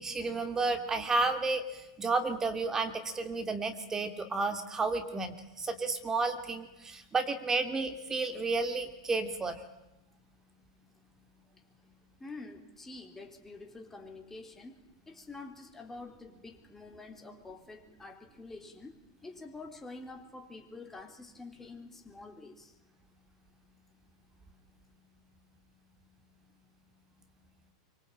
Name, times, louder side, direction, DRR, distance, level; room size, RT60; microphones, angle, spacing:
voice 1, 0.0-9.6, right 3 dB, 20° right, 7 dB, 3.0 m, -32 dB
voice 2, 12.2-14.8 15.1-22.8, left 3 dB, 10° left, 4 dB, 4.0 m, -47 dB
24.5 x 24.5 x 9.0 m, 0.94 s
hypercardioid pair, 100°, 3 cm